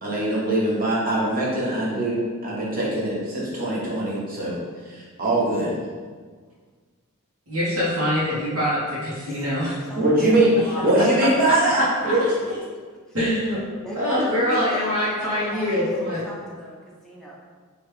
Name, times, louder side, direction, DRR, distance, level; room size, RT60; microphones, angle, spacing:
voice 1, 0.0-4.6 4.9-5.8 9.9-12.2 12.5-12.6, right 1 dB, 40° right, -6 dB, 1.1 m, -22 dB
voice 2, 7.5-9.8 10.9-11.0 11.4-12.2 13.1-13.6 13.9-16.2, equal, 85° right, -10 dB, 1.3 m, -24 dB
voice 3, 9.2-10.9 13.1-13.2 13.8-15.7 16.0-16.8 17.0-17.4, left 1 dB, ahead, -5 dB, 0.6 m, -37 dB
4.7 x 2.7 x 3.2 m, 1.5 s
head